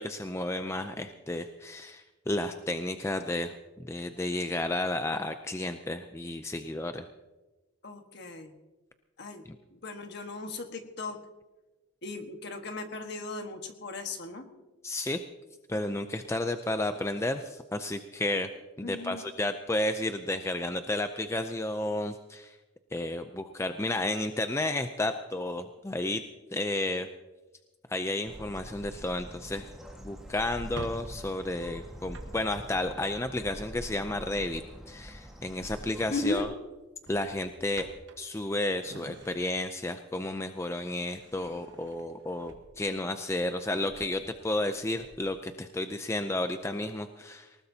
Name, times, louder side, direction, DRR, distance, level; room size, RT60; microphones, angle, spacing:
voice 1, 0.0-3.5 3.9-7.1 14.8-15.2 15.7-18.5 18.8-22.6 22.9-26.2 26.5-27.1 27.9-29.7 30.0-36.5 37.1-37.9 38.2-47.6, left 2 dB, 15° left, 8 dB, 0.4 m, -32 dB
voice 2, 7.8-8.5 9.2-9.4 9.7-11.2 12.0-14.5 18.8-19.2 36.1-36.5, left 2 dB, 55° left, 5 dB, 1.4 m, -36 dB
Bird, 28.3-36.4, equal, ahead, 1.5 m, -45 dB
Drawer open or close, 30.5-34.2 35.7-36.0 36.3-36.5 37.0-39.9 40.3-43.1 43.5-45.4, right 2 dB, 60° right, 1.4 m, -49 dB
19.5 x 19.0 x 2.8 m, 1.2 s
head